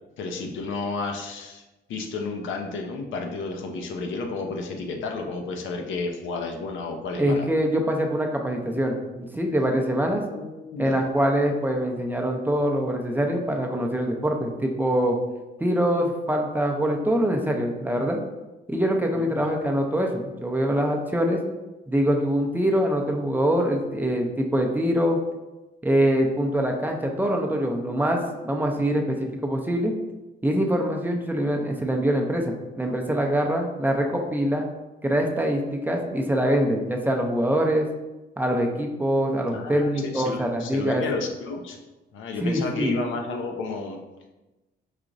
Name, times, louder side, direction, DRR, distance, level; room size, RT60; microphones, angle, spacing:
voice 1, 0.2-1.6 1.9-7.5 7.9-8.0 10.2-11.0 19.4-19.5 39.5-41.8 42.1-44.0, left 3 dB, 80° left, 2 dB, 0.6 m, -31 dB
voice 2, 7.2-10.2 10.8-15.2 15.6-18.2 18.7-21.4 21.9-25.2 25.8-29.9 30.4-34.7 35.0-37.9 38.4-41.0 42.4-43.0, equal, 10° right, 1 dB, 0.5 m, -24 dB
4.8 x 2.9 x 2.5 m, 1.1 s
cardioid pair, 90°, 20 cm